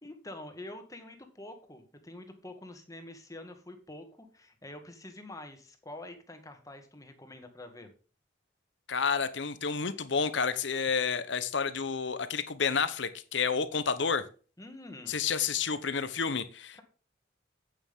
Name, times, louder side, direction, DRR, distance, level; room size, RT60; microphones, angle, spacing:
voice 1, 0.0-7.9 14.6-15.2 16.7-16.8, left 1 dB, 15° left, 6 dB, 1.8 m, -46 dB
voice 2, 8.9-14.2 15.1-16.8, left 5 dB, 65° left, 13 dB, 1.0 m, -30 dB
9.2 x 9.0 x 3.7 m, 0.37 s
head